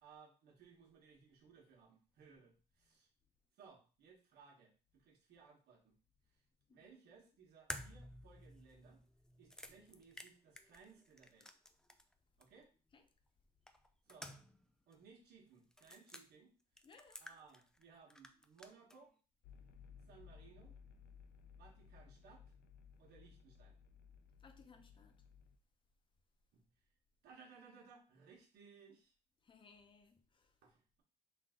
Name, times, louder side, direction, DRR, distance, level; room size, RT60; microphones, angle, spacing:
voice 1, 0.0-3.1 3.5-6.0 6.3-6.4 6.7-9.0 9.4-11.5 12.4-12.7 14.0-14.4 14.9-16.5 17.2-19.1 20.1-20.8 21.6-22.5 23.0-23.8 26.5-26.6 27.2-29.1 30.6-31.0, right 5 dB, 70° right, 1.4 m, -62 dB
sound 1, 7.7-12.1 12.4-12.5 13.7-14.7 14.9-15.0 15.7-16.2 16.8-17.8 18.1-19.0, left 1 dB, 5° left, 0.4 m, -52 dB
voice 2, 16.8-17.2 24.4-25.2 29.4-30.6, left 4 dB, 30° left, 0.7 m, -63 dB
sound 2, 19.4-25.6, left 7 dB, 70° left, 0.5 m, -60 dB
3.8 x 2.6 x 3.7 m
cardioid pair, 110°, 17 cm